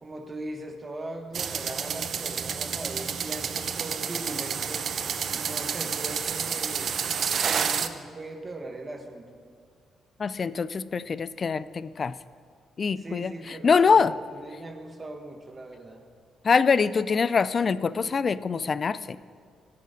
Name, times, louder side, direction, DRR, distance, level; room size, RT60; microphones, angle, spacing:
voice 1, 0.0-4.8 5.3-6.9 7.3-9.3 13.0-16.0, right 2 dB, 30° right, 4 dB, 1.3 m, -39 dB
sound 1, 1.3-7.9, right 7 dB, 55° right, 0.6 m, -30 dB
voice 2, 10.2-12.1 12.8-13.3 13.6-14.1 16.4-19.0, left 5 dB, 40° left, 17 dB, 0.4 m, -23 dB
16.0 x 6.8 x 5.1 m, 2.1 s
cardioid pair, 90°, 0 cm